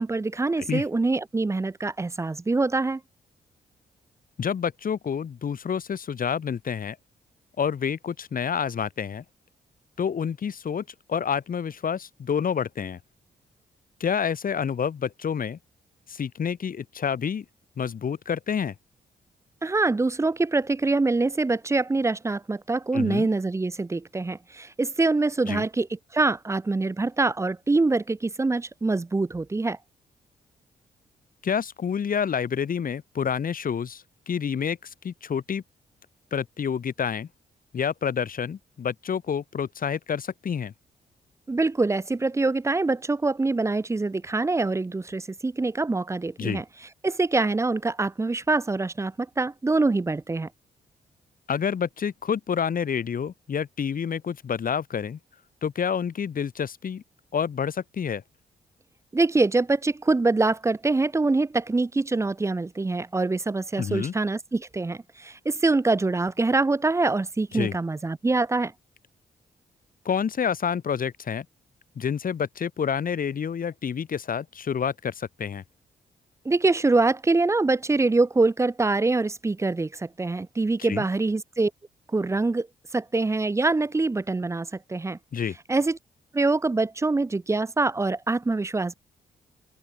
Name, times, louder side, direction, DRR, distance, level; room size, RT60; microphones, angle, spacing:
voice 1, 0.0-3.0 19.6-29.8 41.5-46.6 47.0-50.5 59.1-68.7 76.4-81.7 82.1-82.7 82.9-85.2 85.7-86.0 86.3-89.0, right 3 dB, 15° right, 0.5 m, -24 dB
voice 2, 4.4-7.0 7.6-9.2 10.0-13.0 14.0-15.6 16.1-17.4 17.8-18.7 22.9-23.3 25.5-25.6 31.4-35.6 36.3-37.3 37.7-40.7 46.4-46.6 51.5-55.2 55.6-57.0 57.3-58.2 63.8-64.1 67.5-67.7 70.0-71.4 72.0-75.6 80.8-81.1 85.3-85.5, left 7 dB, 55° left, 2.7 m, -28 dB
cardioid pair, 70°, 17 cm